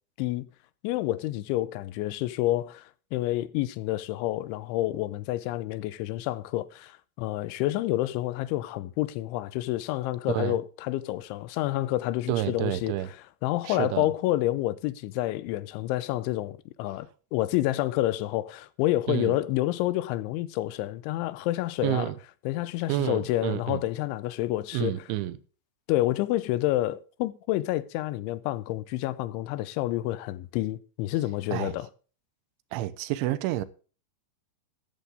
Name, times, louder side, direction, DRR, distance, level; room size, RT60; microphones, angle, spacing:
voice 1, 0.8-12.9 13.4-22.1 22.5-25.0 25.9-31.9, left 16 dB, 85° left, 3.1 m, -29 dB
voice 2, 12.3-13.1 13.7-14.1 19.1-19.4 21.8-22.2 22.9-23.8 24.7-25.4 31.5-31.8 32.7-33.7, right 15 dB, 90° right, 3.2 m, -29 dB
13.5 x 11.0 x 3.5 m
omnidirectional pair, 5.3 m